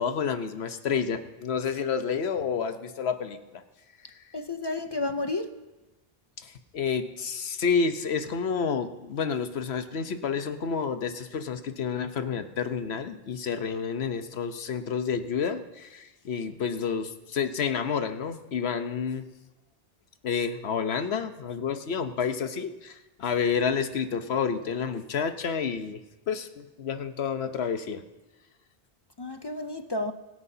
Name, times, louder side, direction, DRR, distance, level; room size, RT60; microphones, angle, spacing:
voice 1, 0.0-3.6 6.4-19.3 20.2-26.0 26.3-28.0, left 6 dB, 85° left, 1.1 m, -29 dB
voice 2, 4.3-5.6 29.2-30.1, left 2 dB, 40° left, 0.4 m, -31 dB
22.5 x 9.7 x 2.8 m
omnidirectional pair, 1.1 m